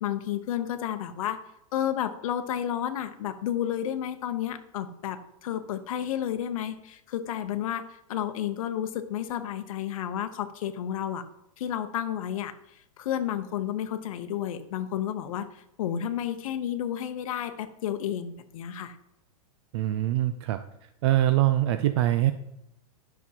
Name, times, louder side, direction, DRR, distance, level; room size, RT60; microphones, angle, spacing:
voice 1, 0.0-1.4 1.7-11.2 11.6-12.5 13.0-19.0, left 10 dB, 65° left, 8 dB, 0.8 m, -31 dB
voice 2, 19.7-20.6 21.0-22.3, right 14 dB, 45° right, 10 dB, 0.5 m, -23 dB
11.0 x 6.1 x 2.8 m, 0.81 s
supercardioid pair, 155°, 19 cm